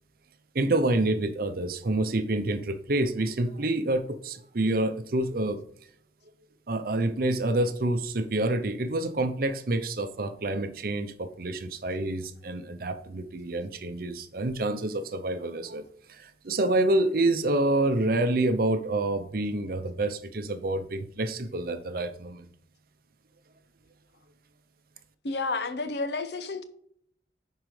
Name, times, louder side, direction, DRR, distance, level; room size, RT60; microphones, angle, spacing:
voice 1, 0.5-5.7 6.7-22.5, right 2 dB, 55° right, 0.7 m, -27 dB
voice 2, 25.2-26.6, left 3 dB, 65° left, 0.8 m, -30 dB
11.0 x 4.7 x 3.2 m
head